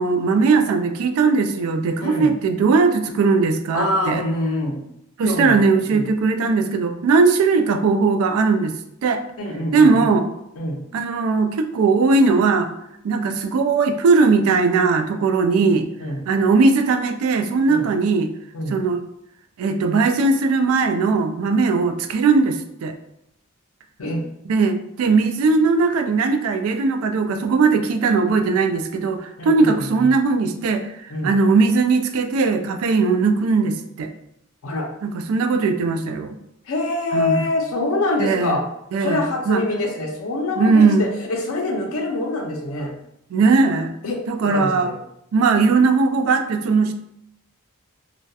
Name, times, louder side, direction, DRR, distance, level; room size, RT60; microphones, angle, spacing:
voice 1, 0.0-4.2 5.2-8.8 9.0-9.2 9.7-10.2 10.9-12.7 13.0-15.9 16.3-18.3 18.7-19.0 19.6-22.9 24.5-30.9 31.2-34.1 35.0-36.3 37.1-37.5 38.2-38.6 38.9-39.6 40.6-41.1 43.3-43.9 44.3-44.9 45.3-46.9, right 4 dB, 85° right, 8 dB, 0.3 m, -19 dB
voice 2, 2.0-2.3 3.7-4.8 5.2-6.1 9.4-10.1 10.6-10.8 16.0-16.3 17.7-17.8 18.5-18.8 24.0-24.2 29.4-30.1 31.1-31.3 34.6-34.9 36.7-38.6 39.0-42.9 44.0-44.9, left 2 dB, 85° left, 2 dB, 0.5 m, -25 dB
2.7 x 2.1 x 2.2 m, 0.78 s
head